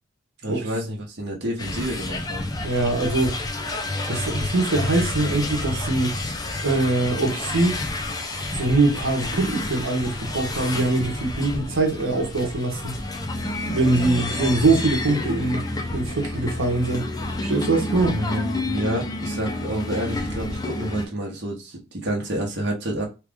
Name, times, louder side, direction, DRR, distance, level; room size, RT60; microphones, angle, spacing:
voice 1, 0.4-2.5 18.1-23.0, right 1 dB, 55° right, 0.9 m, -29 dB
sound 1, 1.6-21.1, left 2 dB, 20° left, 0.4 m, -29 dB
voice 2, 2.6-3.4 4.1-6.2 6.6-7.8 8.5-13.0 13.7-17.1 17.4-18.2, right 2 dB, 80° right, 0.9 m, -23 dB
2.9 x 2.4 x 3.5 m
head